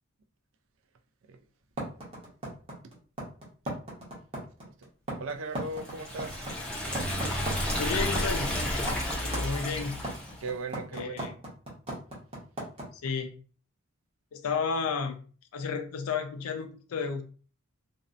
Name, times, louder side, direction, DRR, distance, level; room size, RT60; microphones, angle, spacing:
sound 1, 1.8-12.8, right 1 dB, 25° right, 0.8 m, -36 dB
voice 1, 5.2-6.5 10.4-11.4, right 3 dB, 65° right, 0.3 m, -38 dB
Liquid, 5.8-10.4, left 1 dB, 5° left, 0.5 m, -31 dB
voice 2, 7.8-8.5 9.2-10.1 10.9-11.3 12.9-13.3 14.3-15.2 15.5-17.2, left 5 dB, 85° left, 0.4 m, -32 dB
2.6 x 2.0 x 2.4 m
head